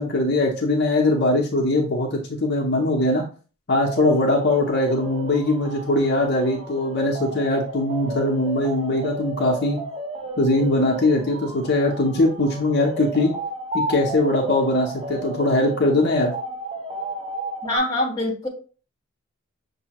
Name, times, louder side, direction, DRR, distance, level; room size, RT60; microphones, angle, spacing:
voice 1, 0.0-3.2 3.7-9.8 10.4-13.3 13.7-16.3, left 2 dB, 50° left, 0 dB, 0.7 m, -21 dB
sound 1, 3.8-17.8, right 2 dB, 25° right, 0.8 m, -33 dB
voice 2, 17.6-18.5, left 1 dB, 15° left, -2 dB, 1.1 m, -24 dB
6.1 x 2.7 x 2.9 m, 0.38 s
head